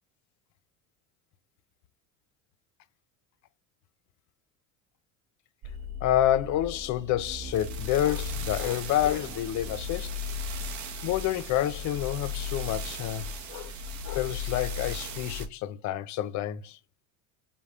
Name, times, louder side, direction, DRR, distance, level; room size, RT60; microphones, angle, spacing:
sound 1, 5.6-15.5, left 3 dB, 50° right, 1.0 m, -36 dB
voice 1, 6.0-10.1 10.5-10.6 11.0-13.8 14.0-16.8, left 12 dB, 50° left, 0.6 m, -28 dB
5.4 x 2.3 x 3.5 m
supercardioid pair, 110°, 38 cm